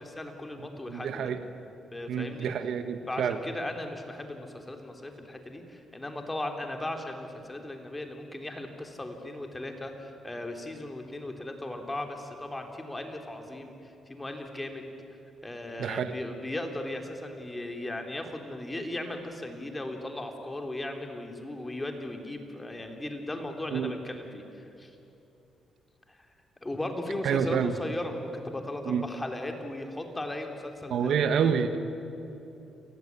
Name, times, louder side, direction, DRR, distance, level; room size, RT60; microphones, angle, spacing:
voice 1, 0.0-1.3 1.9-2.5 3.1-14.9 15.4-25.0 26.1-26.3 26.6-31.5, left 1 dB, 15° left, 4 dB, 3.6 m, -37 dB
voice 2, 0.9-1.4 2.1-3.4 15.8-16.1 23.7-23.9 27.2-27.7 28.9-29.0 30.9-31.8, right 7 dB, 75° right, 9 dB, 1.5 m, -28 dB
29.5 x 17.0 x 9.8 m, 2.9 s
cardioid pair, 90°, 0 cm